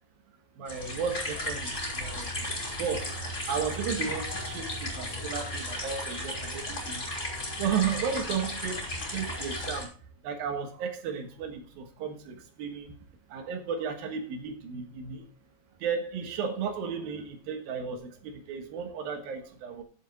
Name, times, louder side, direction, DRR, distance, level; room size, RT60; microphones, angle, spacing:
voice 1, 0.6-2.3 2.8-3.2 3.5-7.1 7.6-9.9 10.2-12.9 13.3-15.2 15.8-19.8, right 6 dB, 65° right, 3.0 m, -34 dB
sound 1, 0.7-9.8, left 1 dB, 20° left, 3.1 m, -35 dB
9.9 x 7.5 x 4.1 m
omnidirectional pair, 4.9 m